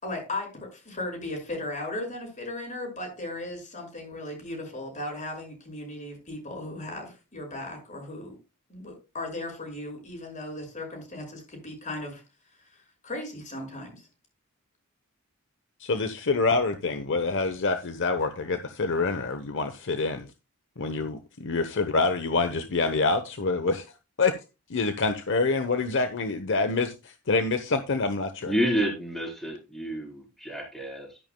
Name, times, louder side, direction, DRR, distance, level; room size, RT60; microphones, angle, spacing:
voice 1, 0.0-8.4 8.7-12.2 13.0-14.0, left 2 dB, 35° left, 6.0 m, -36 dB
voice 2, 15.8-20.3 20.8-23.9 24.2-24.3 24.7-28.5, left 3 dB, 55° left, 0.9 m, -26 dB
voice 3, 28.4-31.2, equal, ahead, 4.1 m, -29 dB
12.5 x 10.5 x 2.2 m
head